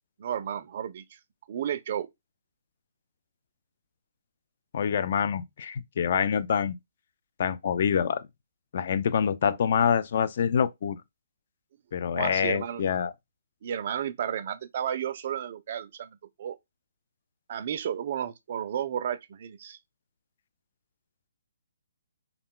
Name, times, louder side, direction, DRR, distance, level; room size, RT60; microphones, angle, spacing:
voice 1, 0.2-1.2 1.5-2.1 12.1-12.9 13.6-16.6 17.5-19.8, right 9 dB, 45° right, 0.3 m, -33 dB
voice 2, 4.7-6.7 7.4-8.2 8.7-11.0 11.9-13.1, left 7 dB, 45° left, 0.3 m, -26 dB
2.3 x 2.2 x 3.6 m
hypercardioid pair, 160°, 0 cm